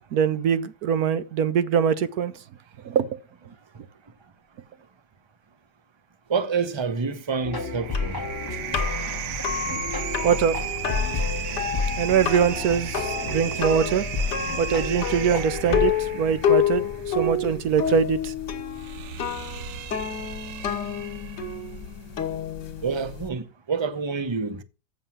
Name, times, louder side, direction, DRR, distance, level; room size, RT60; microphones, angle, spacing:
voice 1, 0.1-2.3 2.8-3.1 10.2-10.6 10.9-11.1 12.0-14.0 14.6-18.3, right 7 dB, 65° right, 1.2 m, -23 dB
voice 2, 6.3-8.2 22.8-24.6, right 5 dB, 40° right, 0.4 m, -27 dB
sound 1, 7.1-21.7, right 11 dB, 85° right, 1.3 m, -36 dB
sound 2, 7.4-15.9, left 3 dB, 15° left, 1.2 m, -31 dB
sound 3, 7.9-23.3, left 7 dB, 80° left, 1.9 m, -29 dB
7.4 x 7.0 x 7.3 m
omnidirectional pair, 1.8 m